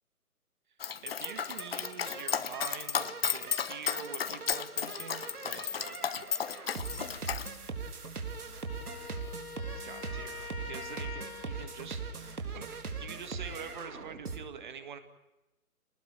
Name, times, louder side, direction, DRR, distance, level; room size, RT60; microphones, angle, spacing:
Dog, 0.8-7.5, left 7 dB, 40° left, 1.1 m, -34 dB
voice 1, 1.0-6.2 9.8-15.0, right 7 dB, 30° right, 10 dB, 1.9 m, -45 dB
sound 1, 1.2-14.4, right 4 dB, 85° right, 4.1 m, -41 dB
Wind instrument woodwind instrument, 8.6-12.0, left 4 dB, 70° left, 2.2 m, -45 dB
26.0 x 19.5 x 8.9 m, 1.0 s
hypercardioid pair, 160°, 45 cm